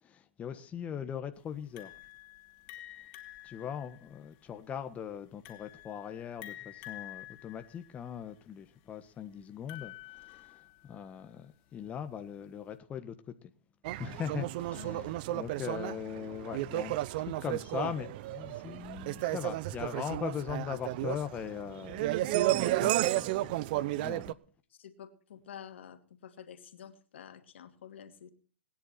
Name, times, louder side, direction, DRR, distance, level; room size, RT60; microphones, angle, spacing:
voice 1, 0.0-1.9 3.4-13.5 14.0-23.5 24.0-24.4, left 8 dB, 20° left, 1.4 m, -40 dB
sound 1, 1.8-11.0, left 16 dB, 45° left, 2.9 m, -49 dB
sound 2, 13.8-24.3, right 16 dB, 50° right, 0.8 m, -33 dB
voice 2, 14.7-15.2 23.7-24.0 24.8-28.3, left 9 dB, 70° left, 2.6 m, -49 dB
20.5 x 10.5 x 4.3 m
hypercardioid pair, 120°, 6 cm